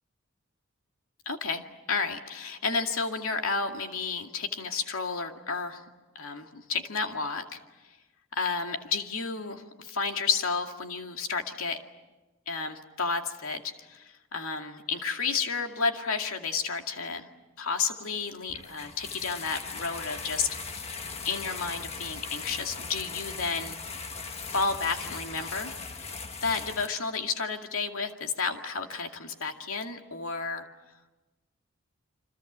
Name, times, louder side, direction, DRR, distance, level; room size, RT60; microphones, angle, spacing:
voice 1, 1.3-1.6 1.9-5.9 6.1-7.6 8.3-11.8 12.5-17.3 17.6-20.9 21.2-23.8 24.5-25.7 26.4-30.7, left 5 dB, 85° left, 4 dB, 2.3 m, -31 dB
sound 1, 18.5-26.9, left 4 dB, 30° left, 1.5 m, -39 dB
28.5 x 25.5 x 7.5 m, 1.1 s
head